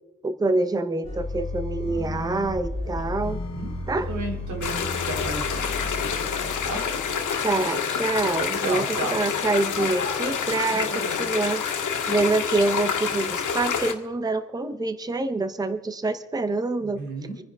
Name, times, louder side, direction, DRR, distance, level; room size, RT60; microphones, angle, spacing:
voice 1, 0.2-3.4 3.9-4.1 7.4-8.9 9.1-11.6 12.1-17.0, right 2 dB, 15° right, 10 dB, 0.7 m, -26 dB
sound 1, 1.0-7.3, left 2 dB, 20° left, 3.5 m, -33 dB
sound 2, 2.8-10.6, left 6 dB, 50° left, 1.4 m, -47 dB
voice 2, 3.3-3.7 4.1-6.9 8.6-9.2 10.7-11.2 16.8-17.4, right 3 dB, 70° right, 2 dB, 3.0 m, -34 dB
sound 3, 4.6-13.9, left 6 dB, 75° left, 1.8 m, -27 dB
26.5 x 10.5 x 3.6 m, 1.1 s
wide cardioid pair, 175°, 30 cm